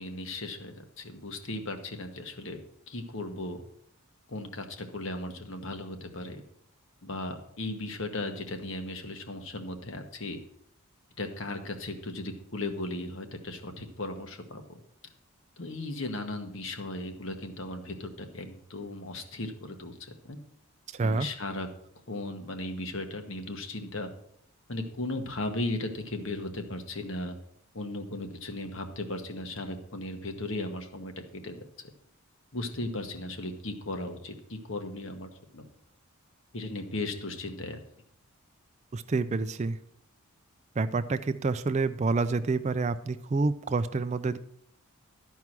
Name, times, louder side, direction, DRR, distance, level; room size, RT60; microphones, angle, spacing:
voice 1, 0.0-2.6 2.9-3.6 4.3-6.4 7.0-10.4 11.2-14.6 15.6-20.4 21.0-21.7 22.1-24.1 24.7-27.4 27.7-31.1 31.4-31.6 32.5-35.6 36.5-37.8, left 2 dB, 60° left, 6 dB, 1.2 m, -36 dB
voice 2, 38.9-39.8 40.8-44.4, right 3 dB, 30° right, 11 dB, 0.3 m, -28 dB
12.5 x 4.7 x 6.0 m, 0.70 s
head